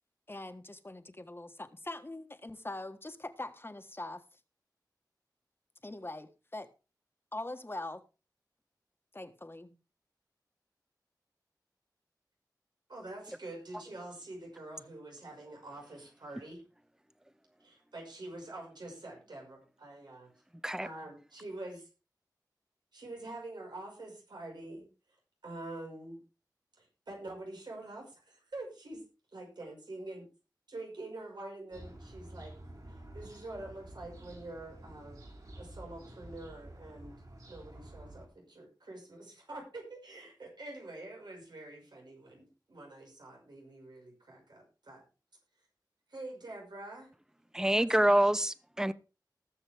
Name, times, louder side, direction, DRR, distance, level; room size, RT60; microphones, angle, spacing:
voice 1, 0.3-4.2 5.8-6.7 7.3-8.0 9.1-9.7, left 2 dB, 30° left, 1.4 m, -42 dB
voice 2, 12.9-16.6 17.6-20.3 20.8-21.9 22.9-24.9 25.4-26.2 26.8-29.0 29.3-30.3 30.7-32.6 32.9-35.2 35.6-37.2 37.5-45.0 46.1-47.1 47.8-47.9, right 2 dB, 90° right, 5.7 m, -46 dB
sound 1, 31.7-38.3, right 1 dB, 60° right, 6.9 m, -50 dB
voice 3, 47.5-48.9, right 1 dB, 10° right, 0.8 m, -26 dB
19.5 x 7.2 x 3.5 m
wide cardioid pair, 75°, 7 cm